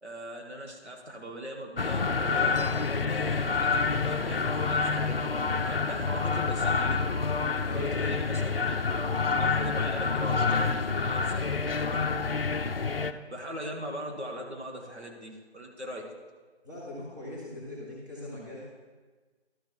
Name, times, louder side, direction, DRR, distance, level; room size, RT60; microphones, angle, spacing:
voice 1, 0.0-7.0 7.6-12.1 12.8-12.9 13.3-16.0, equal, 75° right, 1 dB, 1.9 m, -40 dB
sound 1, 1.8-13.1, left 4 dB, 60° left, 0.5 m, -28 dB
voice 2, 7.6-8.2 16.6-18.6, left 2 dB, 15° right, -7 dB, 1.3 m, -40 dB
11.5 x 4.8 x 4.5 m, 1.4 s
figure-of-eight pair, 165°, 34 cm